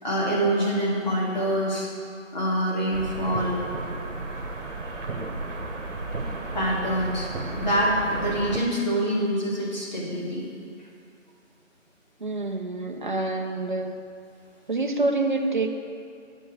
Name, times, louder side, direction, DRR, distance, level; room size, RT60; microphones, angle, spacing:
voice 1, 0.0-1.9 2.3-3.6 6.5-10.5, equal, 35° left, -5 dB, 2.1 m, -25 dB
sound 1, 2.9-8.6, right 2 dB, 65° right, 1.2 m, -33 dB
voice 2, 12.2-14.0 14.7-15.7, right 2 dB, 40° right, 3 dB, 0.6 m, -27 dB
8.5 x 5.3 x 7.7 m, 2.5 s
figure-of-eight pair, 170°, 40 cm